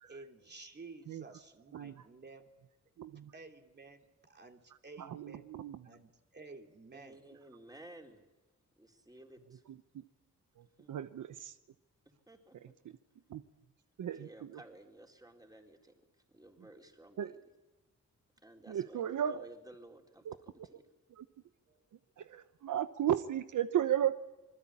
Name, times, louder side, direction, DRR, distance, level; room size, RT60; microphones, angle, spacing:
voice 1, 0.0-2.5 3.1-5.5 5.8-7.2 16.6-16.9 21.7-21.8, right 3 dB, 35° right, 3 dB, 2.9 m, -53 dB
voice 2, 1.7-2.0 3.0-3.3 5.0-5.8 9.9-10.0 10.6-11.5 12.8-13.0 13.3-13.4 14.0-14.6 17.2-17.3 18.7-19.4 20.2-20.3 21.2-21.3 22.2-24.1, right 10 dB, 85° right, 11 dB, 0.9 m, -35 dB
voice 3, 6.9-8.2 8.8-9.6 10.8-10.9 12.3-12.7 14.1-15.9 16.3-17.4 18.4-20.8, right 1 dB, 10° right, 2 dB, 4.4 m, -55 dB
27.0 x 21.0 x 8.6 m, 1.1 s
cardioid pair, 100°, 30 cm